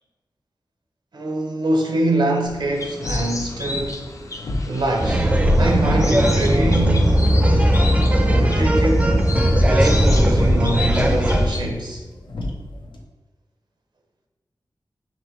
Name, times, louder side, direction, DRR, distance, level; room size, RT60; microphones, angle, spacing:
voice 1, 1.1-4.1 4.7-7.3 8.2-12.0, right 2 dB, 75° right, 0.6 m, -25 dB
sound 1, 2.4-13.0, left 1 dB, 90° left, 0.6 m, -33 dB
sound 2, 2.7-11.6, left 3 dB, 40° left, 0.5 m, -33 dB
sound 3, 5.0-11.5, equal, 15° right, 0.4 m, -17 dB
5.2 x 2.9 x 3.0 m
wide cardioid pair, 80°, 8 cm